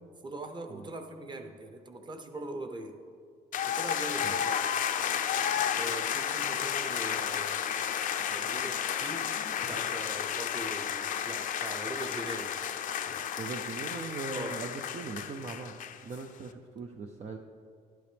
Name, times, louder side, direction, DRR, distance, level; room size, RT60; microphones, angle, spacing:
voice 1, 0.2-3.0 3.7-4.7 5.8-7.7 8.3-9.3 9.7-12.5 14.3-14.6, right 2 dB, 25° right, 7 dB, 1.0 m, -41 dB
sound 1, 3.5-16.2, left 9 dB, 50° left, 0.6 m, -32 dB
voice 2, 13.4-17.4, right 4 dB, 40° right, 3 dB, 0.6 m, -40 dB
12.5 x 11.5 x 3.5 m, 2.2 s
cardioid pair, 110°, 17 cm